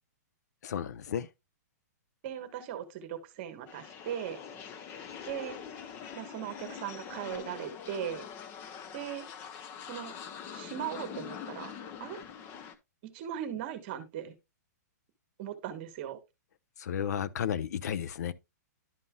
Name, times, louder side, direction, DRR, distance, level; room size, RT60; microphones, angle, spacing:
voice 1, 0.6-1.3 16.8-18.3, left 9 dB, 70° left, 0.6 m, -33 dB
voice 2, 2.2-4.4 5.3-5.6 6.2-8.2 8.9-9.3 9.9-10.1 10.5-11.7 12.0-12.2 13.1-14.3 15.4-16.2, right 10 dB, 35° right, 1.2 m, -38 dB
sound 1, 3.7-12.7, left 7 dB, 25° left, 0.6 m, -44 dB
11.0 x 5.4 x 2.3 m
hypercardioid pair, 160°, 9 cm